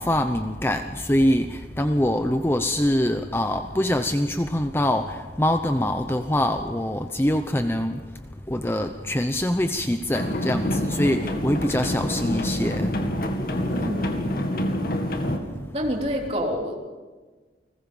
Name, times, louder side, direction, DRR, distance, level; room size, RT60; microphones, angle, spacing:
voice 1, 0.0-8.0 8.5-13.0 13.7-13.8, left 1 dB, 10° left, 7 dB, 0.8 m, -24 dB
sound 1, 10.1-15.4, equal, 50° left, 2.2 m, -27 dB
voice 2, 13.7-14.3 15.7-16.8, equal, 35° right, 0 dB, 3.5 m, -28 dB
29.5 x 20.5 x 5.5 m, 1.4 s
head